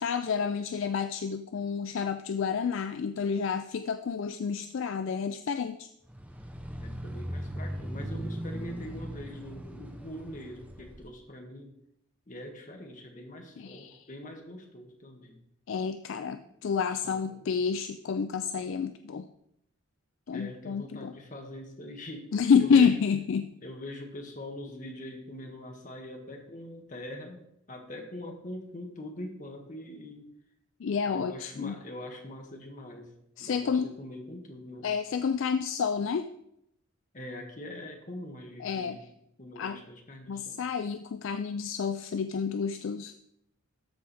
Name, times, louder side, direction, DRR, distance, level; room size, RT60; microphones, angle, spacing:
voice 1, 0.0-5.9 13.6-14.0 15.7-19.3 20.3-21.1 22.3-23.5 30.8-31.7 33.4-33.9 34.8-36.3 38.6-39.0 39.6-39.8 40.3-43.1, left 6 dB, 60° left, 10 dB, 0.3 m, -29 dB
sound 1, 6.1-11.1, equal, 5° right, 0.6 m, -38 dB
voice 2, 6.8-11.7 12.3-15.4 16.4-16.5 16.9-17.4 20.3-23.0 23.6-30.3 31.0-34.9 37.1-39.1 39.4-40.6, left 1 dB, 35° left, 3 dB, 1.4 m, -43 dB
13.0 x 4.9 x 4.1 m, 0.76 s
head